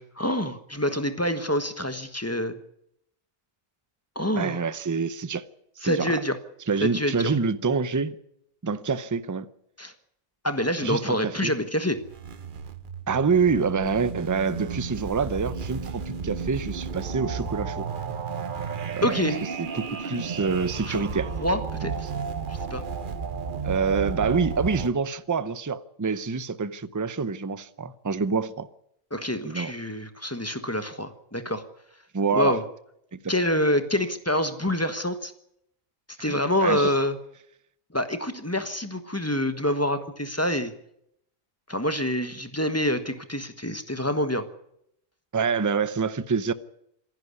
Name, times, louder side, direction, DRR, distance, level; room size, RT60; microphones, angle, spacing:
voice 1, 0.0-2.6 4.1-4.6 5.8-6.4 6.8-7.3 9.8-9.9 10.4-12.0 19.0-19.4 20.9-21.1 21.4-21.9 22.5-22.8 29.1-31.6 32.3-32.6 33.3-35.3 36.2-37.2 37.9-40.7 41.7-44.5, left 1 dB, 10° left, 1.2 m, -26 dB
voice 2, 4.4-5.4 5.8-6.2 6.7-8.2 8.6-9.5 10.8-11.5 13.1-17.9 18.9-19.2 19.6-21.3 23.6-28.7 29.4-29.7 32.1-32.6 33.1-33.3 36.2-36.9 45.3-46.5, right 5 dB, 20° right, 0.5 m, -26 dB
sound 1, 12.0-24.9, right 5 dB, 40° right, 1.0 m, -33 dB
26.0 x 11.0 x 9.6 m
omnidirectional pair, 1.4 m